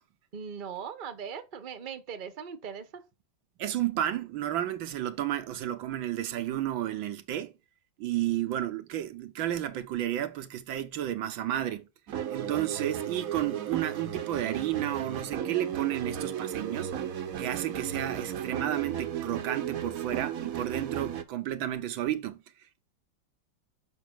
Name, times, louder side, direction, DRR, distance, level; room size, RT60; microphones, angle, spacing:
voice 1, 0.3-3.0, right 7 dB, 35° right, 0.9 m, -39 dB
voice 2, 3.6-7.5 8.0-11.9 12.3-16.9 17.4-22.4, right 12 dB, 80° right, 1.5 m, -32 dB
sound 1, 12.1-21.2, right 9 dB, 55° right, 1.1 m, -35 dB
6.9 x 5.8 x 6.0 m
omnidirectional pair, 2.1 m